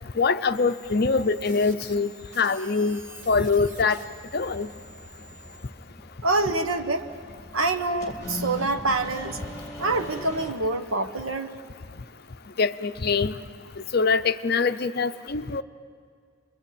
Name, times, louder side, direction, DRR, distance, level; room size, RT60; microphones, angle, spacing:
voice 1, 0.2-2.1 2.4-3.0 3.3-4.0 4.3-4.7 12.6-13.3 13.9-15.6, left 4 dB, 45° left, 10 dB, 0.6 m, -23 dB
sound 1, 0.5-5.6, right 2 dB, 65° right, 3.0 m, -48 dB
sound 2, 2.9-10.5, left 1 dB, 15° left, 2.5 m, -41 dB
voice 2, 6.2-7.0 7.5-9.4 9.8-11.5, right 2 dB, 80° right, 7 dB, 1.4 m, -26 dB
29.0 x 22.5 x 8.7 m, 2.1 s
head